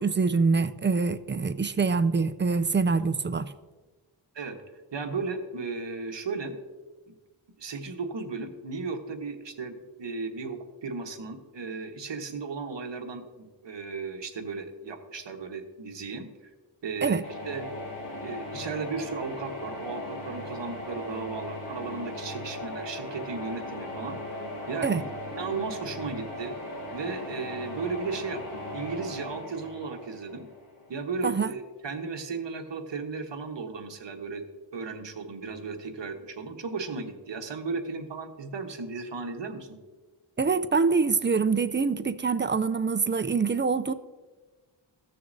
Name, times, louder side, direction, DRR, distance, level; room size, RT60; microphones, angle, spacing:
voice 1, 0.0-3.5 17.0-17.2 24.8-25.0 31.2-31.5 40.4-43.9, right 4 dB, 25° right, 0.4 m, -25 dB
voice 2, 4.3-6.6 7.1-7.2 7.6-16.5 16.8-17.7 18.1-24.2 24.7-26.6 26.9-30.5 30.9-34.4 34.7-39.8, right 4 dB, 60° right, 1.2 m, -35 dB
sound 1, 17.2-31.1, left 1 dB, 90° left, 2.1 m, -38 dB
16.0 x 6.6 x 2.7 m
wide cardioid pair, 80°, 50 cm